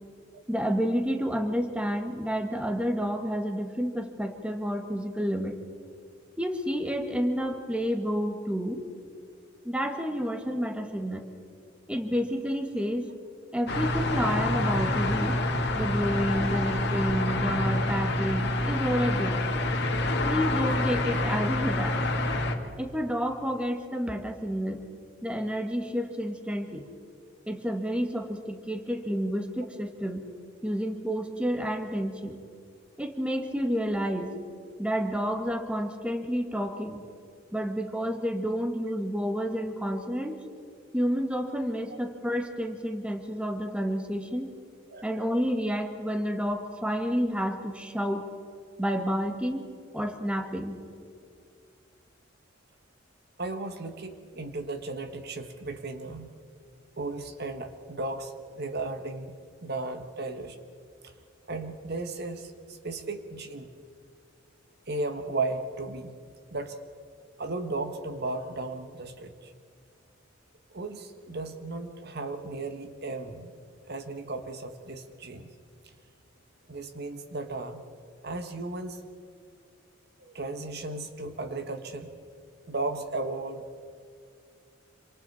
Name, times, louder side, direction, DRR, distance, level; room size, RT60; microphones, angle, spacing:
voice 1, 0.5-5.5 6.4-8.8 9.6-11.2 11.9-13.1 13.5-15.4 15.7-19.4 20.2-22.0 22.8-24.8 25.2-26.9 27.5-30.2 30.6-32.4 33.0-34.4 34.8-37.0 37.5-40.4 40.9-44.5 45.0-48.3 48.8-49.6 49.9-50.8, equal, 5° right, 4 dB, 1.8 m, -30 dB
sound 1, 13.7-22.6, left 2 dB, 60° left, 2.1 m, -27 dB
voice 2, 44.9-45.2 53.4-56.3 57.0-59.3 59.6-60.6 61.0-61.1 61.5-63.7 64.9-66.2 66.5-66.8 67.4-69.5 70.7-73.5 73.9-75.5 76.7-77.8 78.2-79.0 80.2-82.1 82.7-83.8, right 2 dB, 55° right, 7 dB, 1.5 m, -35 dB
27.5 x 27.0 x 4.3 m, 2.3 s
head